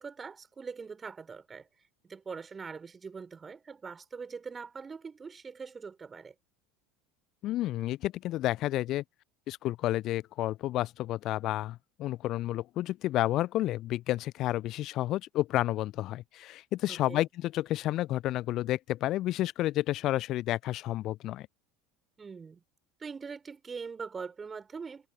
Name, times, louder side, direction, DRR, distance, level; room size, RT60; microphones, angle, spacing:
voice 1, 0.0-1.7 2.0-6.3 16.9-17.3 22.2-22.6 23.0-25.1, right 5 dB, 20° right, 5.9 m, -42 dB
voice 2, 7.4-9.0 9.5-21.5, left 15 dB, 45° left, 0.6 m, -31 dB
figure-of-eight pair, 70°, 0 cm